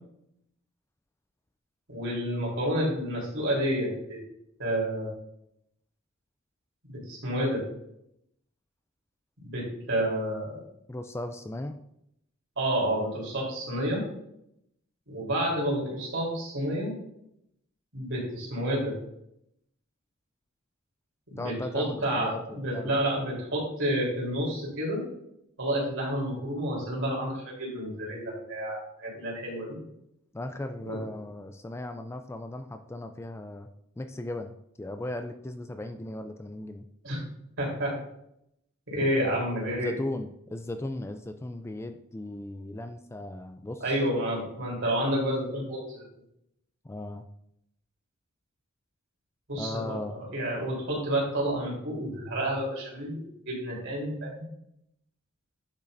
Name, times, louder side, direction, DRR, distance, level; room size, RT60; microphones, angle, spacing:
voice 1, 1.9-4.2 4.6-5.1 6.9-7.6 9.4-10.6 12.6-14.0 15.1-16.9 17.9-18.9 21.3-25.0 25.6-29.8 30.9-31.0 37.0-37.2 37.6-37.9 38.9-39.9 43.8-46.0 49.5-54.5, right 1 dB, 65° right, -3 dB, 3.5 m, -30 dB
voice 2, 10.9-11.8 21.4-23.0 30.3-33.7 34.0-36.8 39.8-43.9 46.8-47.2 49.5-50.2, left 1 dB, 15° left, 7 dB, 0.4 m, -37 dB
9.8 x 7.1 x 2.6 m, 0.77 s
head